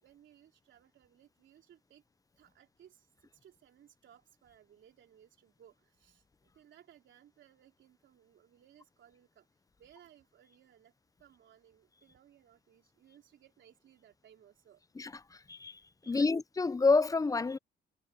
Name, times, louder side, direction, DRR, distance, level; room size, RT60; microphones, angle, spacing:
voice 1, 0.0-2.0 2.4-6.2 6.5-9.5 9.8-10.9 11.2-14.8 16.0-16.3, right 10 dB, 70° right, 3.4 m, -61 dB
voice 2, 15.0-15.8 16.1-17.6, left 3 dB, 15° left, 0.5 m, -29 dB
cardioid pair, 90°, 20 cm